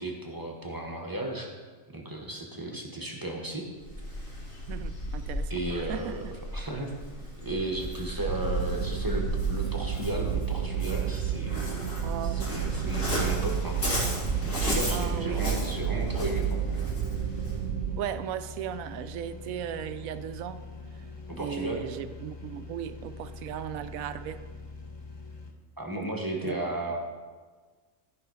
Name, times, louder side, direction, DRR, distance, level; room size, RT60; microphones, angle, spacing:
voice 1, 0.0-1.5 1.9-3.7 5.5-6.9 7.4-11.9 12.2-13.8 14.4-16.8 21.3-21.8 25.8-27.0, right 1 dB, 15° right, 1 dB, 1.0 m, -35 dB
Waves surf, 3.8-17.7, left 1 dB, 70° left, 2.6 m, -35 dB
voice 2, 4.7-6.4 12.0-12.9 14.9-15.5 18.0-20.7 21.4-24.4 26.4-26.6, right 10 dB, 90° right, 12 dB, 1.0 m, -37 dB
sound 1, 8.3-18.0, right 8 dB, 65° right, 0.9 m, -31 dB
sound 2, 12.6-25.5, left 3 dB, 25° left, 0.7 m, -44 dB
13.0 x 5.3 x 4.8 m, 1.4 s
omnidirectional pair, 1.4 m